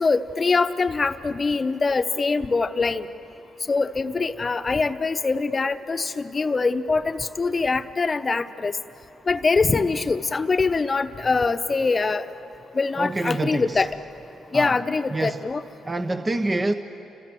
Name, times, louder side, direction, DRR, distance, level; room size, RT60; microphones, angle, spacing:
voice 1, 0.0-3.0 3.7-8.7 9.3-12.2 12.7-13.9 14.5-15.6, left 4 dB, 35° left, 9 dB, 1.0 m, -23 dB
voice 2, 13.0-13.9 14.5-14.8 15.1-15.4 15.8-16.7, right 2 dB, 25° right, 7 dB, 1.0 m, -26 dB
29.5 x 26.0 x 7.8 m, 2.9 s
cardioid pair, 70°, 0 cm